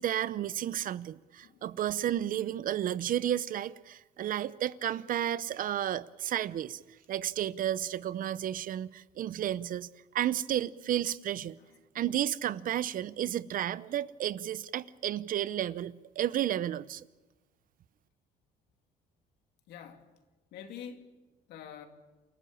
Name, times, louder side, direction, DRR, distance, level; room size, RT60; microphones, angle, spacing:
voice 1, 0.0-6.8 7.1-9.9 10.1-11.6 11.9-17.0, right 11 dB, 55° right, 0.7 m, -32 dB
voice 2, 19.7-20.1 20.5-21.1 21.5-21.9, left 8 dB, 80° left, 2.6 m, -46 dB
29.0 x 13.5 x 8.7 m
cardioid pair, 110°, 17 cm